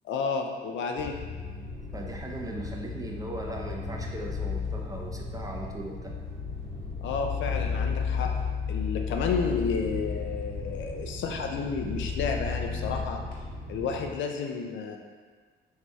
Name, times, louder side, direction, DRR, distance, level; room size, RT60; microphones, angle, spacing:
voice 1, 0.0-1.2 7.0-8.3 8.7-13.2 13.7-15.0, left 5 dB, 70° left, 3 dB, 0.4 m, -31 dB
sound 1, 1.0-14.1, left 5 dB, 45° left, 1.1 m, -34 dB
voice 2, 1.9-6.2, right 1 dB, 20° right, 0 dB, 0.4 m, -38 dB
3.1 x 2.7 x 3.5 m, 1.5 s
cardioid pair, 90°, 20 cm